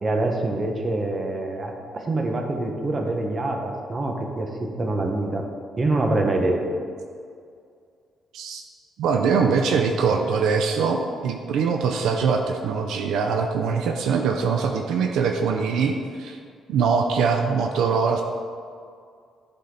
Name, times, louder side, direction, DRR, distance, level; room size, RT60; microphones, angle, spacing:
voice 1, 0.0-5.4 5.8-6.6, right 2 dB, 35° right, 2 dB, 1.1 m, -25 dB
voice 2, 9.0-16.4 16.7-18.2, right 5 dB, 80° right, 3 dB, 0.5 m, -22 dB
11.5 x 4.2 x 4.0 m, 2.2 s
cardioid pair, 90°, 0 cm